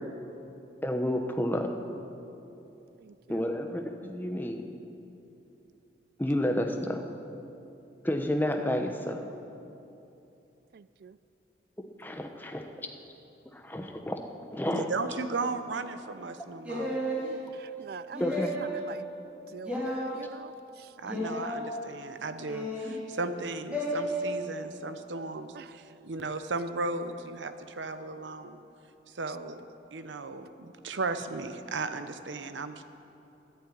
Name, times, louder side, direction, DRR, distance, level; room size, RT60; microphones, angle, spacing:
voice 1, 0.8-1.7 3.3-4.6 6.2-7.0 8.0-9.2 12.0-12.6 13.5-14.2 14.5-14.8 18.2-18.6, left 1 dB, 10° left, 0.8 m, -30 dB
voice 2, 3.0-3.5 10.7-11.2 17.5-18.3 18.6-19.0 19.5-20.9 25.5-25.7, right 6 dB, 55° right, 0.3 m, -45 dB
voice 3, 14.7-17.0 21.0-25.5 26.0-28.6 29.1-32.8, right 3 dB, 90° right, 0.8 m, -35 dB
sound 1, 16.6-17.2 18.1-18.8 19.6-20.1 21.0-21.6 22.5-23.0 23.7-24.0, equal, 5° right, 2.8 m, -32 dB
11.5 x 9.9 x 8.5 m
head